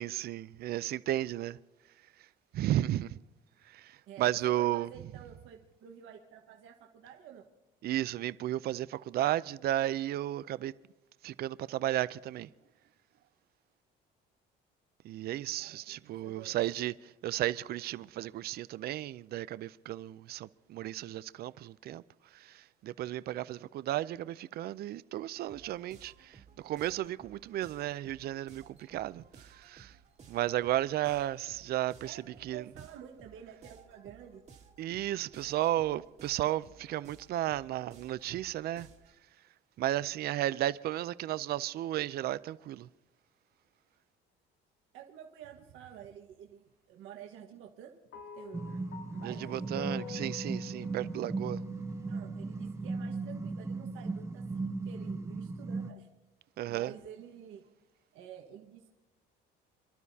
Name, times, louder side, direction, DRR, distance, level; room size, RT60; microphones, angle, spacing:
voice 1, 0.0-1.6 2.5-3.2 3.7-3.9 4.2-4.9 7.8-10.7 11.2-12.5 15.0-16.9 17.2-22.0 22.3-29.2 29.6-29.9 30.3-32.2 32.4-32.6 34.8-38.9 39.8-42.9 49.2-51.6 56.6-56.9, right 13 dB, 55° right, 0.5 m, -33 dB
voice 2, 4.1-7.5 15.6-16.8 32.0-34.4 44.9-47.9 48.3-49.7 52.1-56.1 56.7-57.6 58.1-58.9, right 9 dB, 80° right, 1.5 m, -50 dB
sound 1, 25.5-39.2, right 6 dB, 35° right, 1.8 m, -57 dB
sound 2, 48.1-52.6, left 7 dB, 65° left, 0.9 m, -48 dB
sound 3, 48.5-55.9, right 3 dB, 15° right, 0.9 m, -37 dB
28.0 x 12.0 x 2.8 m
cardioid pair, 135°, 20 cm